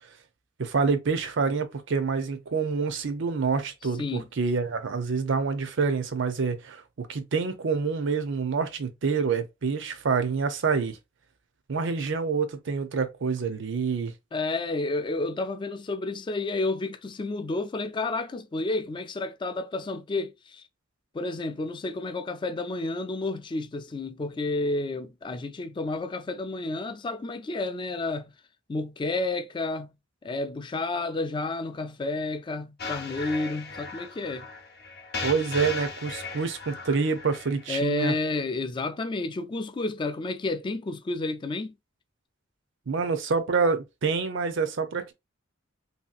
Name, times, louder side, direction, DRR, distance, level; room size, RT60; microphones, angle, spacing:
voice 1, 0.6-11.0 11.7-14.1 35.2-38.1 42.9-45.1, right 5 dB, 65° right, 0.5 m, -27 dB
voice 2, 14.3-20.6 21.1-28.3 28.7-29.9 30.2-34.5 35.6-35.7 37.7-41.7, left 2 dB, 25° left, 0.3 m, -31 dB
sound 1, 32.8-37.8, left 4 dB, 55° left, 0.7 m, -37 dB
3.0 x 2.7 x 2.4 m
head